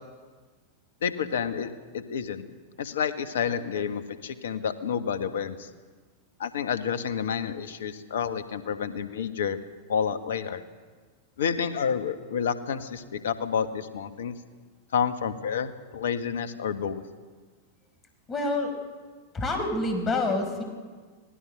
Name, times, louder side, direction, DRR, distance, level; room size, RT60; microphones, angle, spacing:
voice 1, 1.0-2.4 2.8-5.7 6.4-9.6 9.9-10.6 11.4-14.3 14.9-17.0, left 7 dB, 60° left, 11 dB, 1.5 m, -29 dB
voice 2, 18.3-18.7 19.3-20.6, left 2 dB, 25° left, 5 dB, 5.2 m, -27 dB
26.0 x 18.5 x 6.7 m, 1.5 s
figure-of-eight pair, 90°, 0 cm